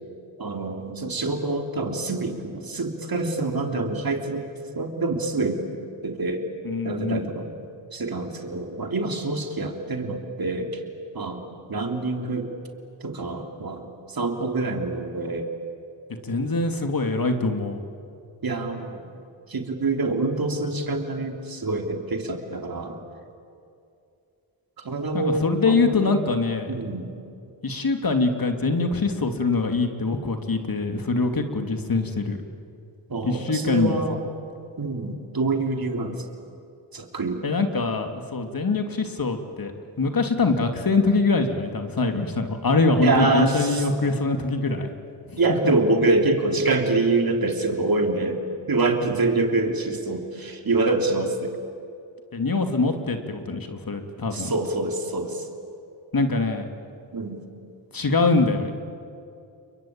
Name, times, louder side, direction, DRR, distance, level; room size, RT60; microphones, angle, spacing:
voice 1, 0.4-4.5 4.7-5.6 6.0-6.5 6.8-10.8 11.1-11.4 11.7-12.5 13.0-15.5 18.4-19.0 19.5-23.0 24.8-26.2 26.7-27.1 33.1-34.2 34.8-36.2 36.9-37.4 43.0-43.9 45.4-48.4 48.7-51.6 54.3-55.5 57.1-57.4, right 2 dB, 45° right, 3 dB, 3.7 m, -26 dB
voice 2, 6.6-7.3 16.2-17.8 25.1-26.7 27.6-32.4 33.2-34.0 37.4-44.9 45.3-45.4 52.3-54.5 56.1-56.7 57.9-58.7, left 3 dB, 45° left, 6 dB, 2.8 m, -23 dB
29.5 x 22.5 x 8.9 m, 2.5 s
supercardioid pair, 45°, 48 cm